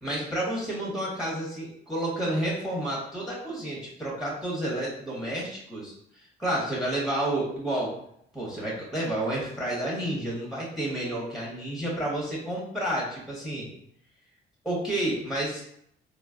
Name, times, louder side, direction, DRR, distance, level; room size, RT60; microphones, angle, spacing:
voice 1, 0.0-5.9 6.4-7.9 8.3-13.7 14.6-15.6, right 1 dB, ahead, -4 dB, 1.2 m, -30 dB
3.9 x 2.1 x 2.4 m, 0.71 s
cardioid pair, 90°, 20 cm